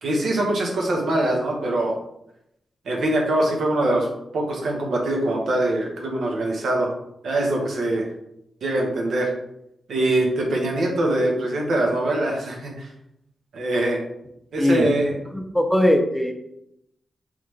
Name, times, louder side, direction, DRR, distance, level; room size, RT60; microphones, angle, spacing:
voice 1, 0.0-1.9 2.8-4.1 4.3-6.9 7.2-8.1 8.6-9.3 9.9-12.9 13.5-14.0 14.5-15.1, right 1 dB, 80° right, 0 dB, 1.0 m, -23 dB
voice 2, 14.6-16.3, left 1 dB, 5° left, 5 dB, 0.5 m, -21 dB
3.7 x 3.3 x 3.2 m, 0.80 s
cardioid pair, 85°, 0 cm